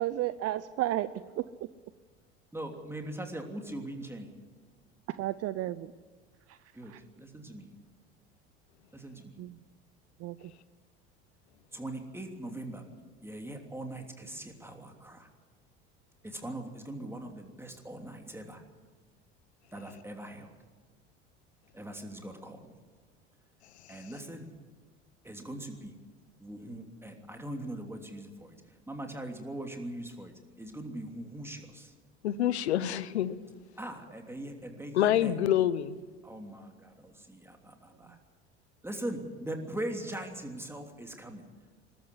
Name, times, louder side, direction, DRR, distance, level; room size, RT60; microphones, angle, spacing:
voice 1, 0.0-1.7 5.1-5.9 6.5-6.6 6.9-7.0 9.4-9.6 10.2-10.5 17.0-17.2 38.1-38.2, right 14 dB, 45° right, 15 dB, 0.7 m, -33 dB
voice 2, 2.5-4.3 6.7-7.7 8.9-9.3 11.7-12.8 13.2-15.3 16.2-18.6 19.7-20.5 21.7-22.7 23.9-24.5 25.2-25.9 26.4-28.5 28.9-31.9 33.8-35.3 36.2-38.2 38.8-41.5, right 1 dB, 5° right, 3 dB, 3.1 m, -41 dB
voice 3, 32.2-33.4 34.9-36.0, left 11 dB, 85° left, 17 dB, 0.9 m, -27 dB
20.5 x 13.0 x 9.8 m, 1.4 s
hypercardioid pair, 75°, 33 cm